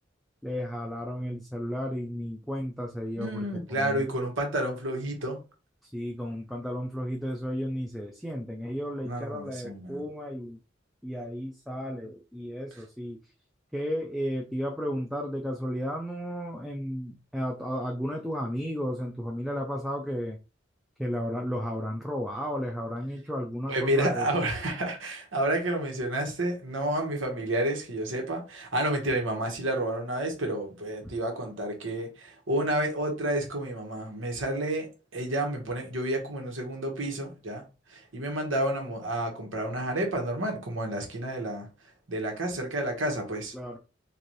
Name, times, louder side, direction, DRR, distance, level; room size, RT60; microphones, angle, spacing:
voice 1, 0.4-4.3 5.8-10.6 11.0-13.2 13.7-20.4 21.0-24.3 43.5-43.8, equal, ahead, 0.4 m, -33 dB
voice 2, 3.2-5.4 9.0-10.0 23.7-37.6 37.9-41.7 42.1-43.5, right 1 dB, 85° right, 1.3 m, -30 dB
4.0 x 2.6 x 3.1 m
head